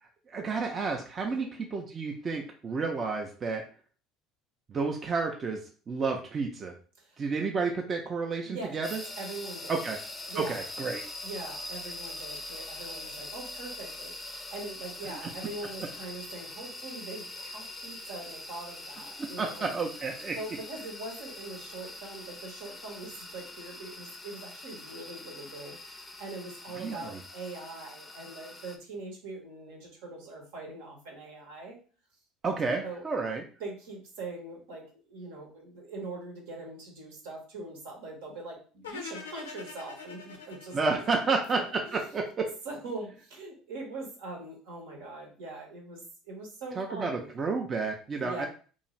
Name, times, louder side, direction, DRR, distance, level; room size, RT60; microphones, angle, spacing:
voice 1, 0.3-3.6 4.7-6.7 7.2-9.0 9.7-10.0 10.3-11.0 15.1-15.2 19.2-20.4 26.8-27.2 32.4-33.4 40.7-42.5 46.8-48.5, right 4 dB, 35° right, 2 dB, 0.5 m, -31 dB
sound 1, 8.8-28.8, left 2 dB, 20° left, 0.4 m, -43 dB
voice 2, 9.2-9.8 10.3-10.6 11.2-19.7 20.3-31.8 32.8-33.0 33.6-40.8 41.2-41.3 41.8-42.0 42.6-47.3 48.2-48.5, right 2 dB, 75° right, 0 dB, 1.0 m, -42 dB
sound 2, 38.8-42.0, left 4 dB, 90° left, 0.4 m, -44 dB
2.6 x 2.3 x 3.0 m, 0.39 s
hypercardioid pair, 70°, 0 cm